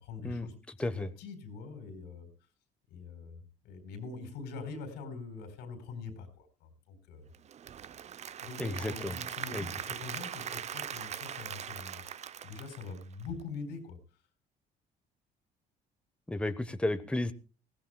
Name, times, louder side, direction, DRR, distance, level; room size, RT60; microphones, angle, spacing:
voice 1, 0.0-2.3 2.9-7.3 8.4-12.0 12.4-14.0, left 4 dB, 90° left, 8 dB, 4.5 m, -44 dB
Applause / Crowd, 7.3-13.4, right 9 dB, 40° right, 0.6 m, -41 dB
voice 2, 8.6-9.1 9.5-9.6 16.3-17.3, left 1 dB, 5° left, 10 dB, 1.0 m, -33 dB
20.5 x 16.5 x 2.3 m, 0.35 s
cardioid pair, 110°, 17 cm